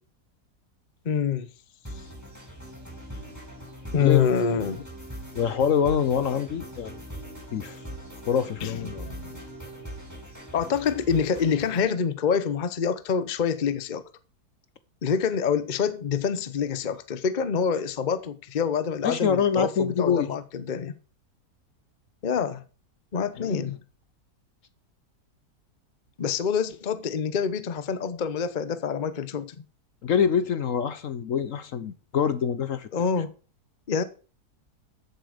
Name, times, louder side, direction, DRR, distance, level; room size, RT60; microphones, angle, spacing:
voice 1, 1.0-1.5 3.9-4.9 8.6-9.4 10.5-14.0 15.0-21.0 22.2-22.6 23.1-23.8 26.2-29.6 32.9-33.3 33.9-34.0, left 6 dB, 40° left, 0.7 m, -26 dB
sound 1, 1.9-11.9, right 1 dB, 10° right, 5.3 m, -41 dB
voice 2, 5.3-6.9 7.5-7.8 8.3-9.1 19.0-20.3 23.4-23.6 30.0-32.9, left 7 dB, 60° left, 1.1 m, -25 dB
14.0 x 7.8 x 5.0 m
omnidirectional pair, 1.8 m